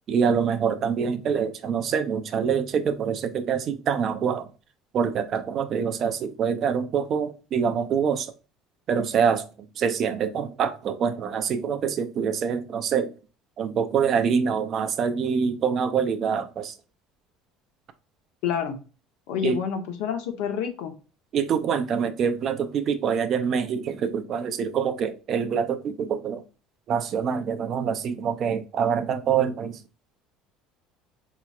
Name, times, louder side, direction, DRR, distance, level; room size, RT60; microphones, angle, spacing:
voice 1, 0.1-4.5 4.9-8.3 8.9-9.5 9.8-13.1 13.6-16.7 19.4-19.6 21.3-26.4 26.9-29.8, right 7 dB, 45° right, 0.5 m, -25 dB
voice 2, 18.4-18.8 19.3-20.9, left 8 dB, 80° left, 0.9 m, -28 dB
4.1 x 2.9 x 2.4 m
cardioid pair, 120°, 0 cm